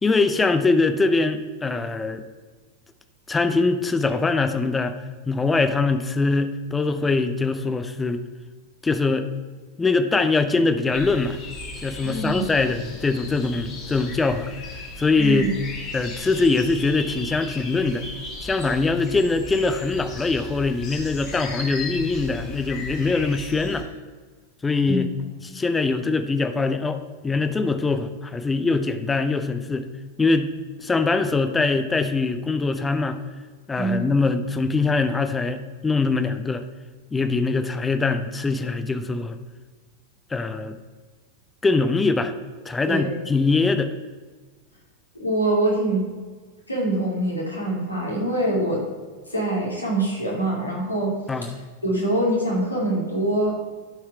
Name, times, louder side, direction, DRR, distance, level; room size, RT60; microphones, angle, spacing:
voice 1, 0.0-2.2 3.3-5.0 5.3-8.2 8.8-9.3 9.8-11.4 11.8-14.5 15.0-15.5 15.9-18.1 18.4-23.9 24.6-25.1 25.4-29.9 30.2-30.5 30.8-33.2 33.7-36.7 37.1-39.4 40.3-40.8 41.6-42.3 42.6-43.9 51.3-51.6, left 3 dB, 15° left, 9 dB, 0.6 m, -22 dB
sound 1, 10.9-23.8, left 2 dB, 35° left, 1.9 m, -36 dB
voice 2, 12.0-12.4 15.2-15.5 24.9-25.0 33.8-34.1 42.9-43.1 45.1-46.0 46.7-48.8 49.3-51.2 51.8-53.5, right 1 dB, 85° left, -3 dB, 2.4 m, -24 dB
11.5 x 4.7 x 4.5 m, 1.4 s
figure-of-eight pair, 90°, 0 cm